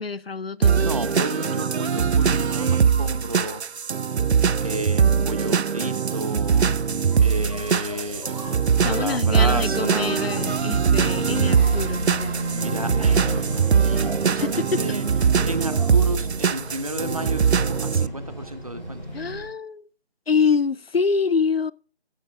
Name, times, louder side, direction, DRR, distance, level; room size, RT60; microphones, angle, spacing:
voice 1, 0.0-0.9 8.8-12.4 14.4-15.0 19.1-19.8 20.3-21.7, left 5 dB, 65° left, 0.6 m, -25 dB
sound 1, 0.6-18.1, right 6 dB, 80° right, 0.6 m, -22 dB
voice 2, 0.8-3.6 4.6-6.7 7.2-8.3 8.8-10.2 12.5-15.1 15.4-19.0, right 1 dB, 35° right, 1.0 m, -32 dB
Engine, 6.5-19.5, right 1 dB, ahead, 2.6 m, -34 dB
15.5 x 11.0 x 2.5 m
figure-of-eight pair, 175°, 32 cm